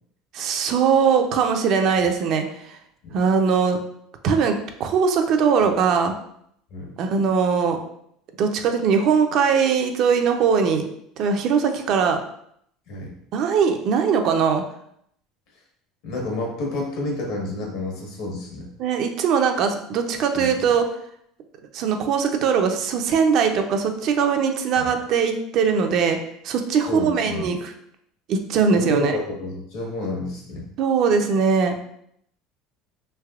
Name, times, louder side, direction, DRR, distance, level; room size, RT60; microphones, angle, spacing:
voice 1, 0.3-2.8 3.1-3.8 4.2-6.1 7.0-7.8 8.4-10.8 11.2-12.2 13.3-14.6 18.8-20.9 21.7-26.2 26.4-27.7 28.3-29.2 30.8-31.8, right 6 dB, 55° right, 5 dB, 0.4 m, -21 dB
voice 2, 16.0-18.7 20.3-20.7 24.8-25.0 26.9-27.5 28.7-30.7, left 2 dB, 75° left, -1 dB, 1.2 m, -30 dB
3.3 x 2.8 x 2.3 m, 0.70 s
supercardioid pair, 115°, 0 cm